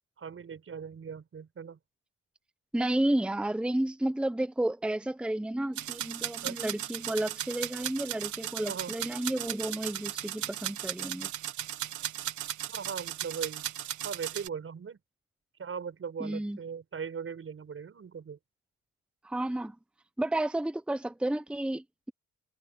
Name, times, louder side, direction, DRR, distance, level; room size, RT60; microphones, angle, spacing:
voice 1, 0.2-1.8 6.4-6.6 8.7-9.0 12.7-13.7 14.0-15.0 15.6-18.4, right 6 dB, 45° right, 5.9 m, -39 dB
voice 2, 2.7-11.3 16.2-16.6 19.2-19.8 20.2-22.1, right 1 dB, 5° right, 0.9 m, -31 dB
sound 1, 5.8-14.5, right 12 dB, 75° right, 1.5 m, -36 dB
cardioid pair, 90°, 30 cm